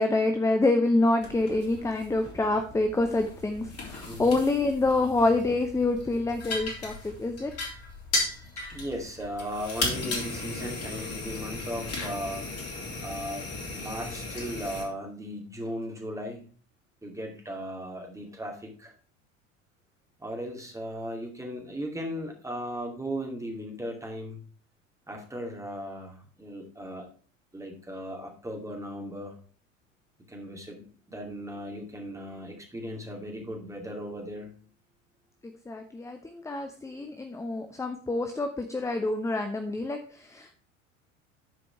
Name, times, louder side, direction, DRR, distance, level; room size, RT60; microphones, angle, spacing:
voice 1, 0.0-7.5 35.4-40.5, left 2 dB, 10° left, 6 dB, 0.8 m, -27 dB
sound 1, 1.2-14.8, left 2 dB, 35° left, 3.7 m, -36 dB
voice 2, 4.1-4.4 8.7-12.5 13.0-16.4 17.0-18.9 20.2-24.4 25.1-27.1 27.5-29.3 30.3-34.6, equal, 10° right, 1 dB, 2.4 m, -37 dB
11.0 x 5.0 x 4.6 m, 0.41 s
figure-of-eight pair, 75°, 39 cm